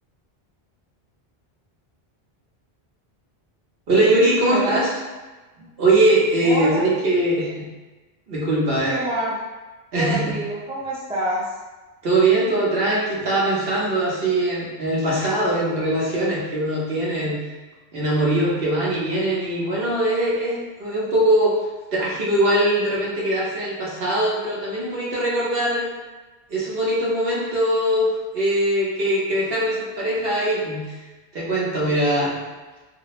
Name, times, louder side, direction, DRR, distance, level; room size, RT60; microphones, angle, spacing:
voice 1, 3.9-4.9 5.8-7.7 8.3-9.0 9.9-10.4 12.0-17.4 17.9-21.6 21.9-25.8 26.5-31.0 31.3-32.3, right 1 dB, 65° right, -5 dB, 1.1 m, -21 dB
voice 2, 4.5-4.8 6.4-6.8 8.9-9.4 9.9-11.5, right 1 dB, 10° right, -5 dB, 0.3 m, -26 dB
2.6 x 2.1 x 4.0 m, 1.2 s
omnidirectional pair, 1.1 m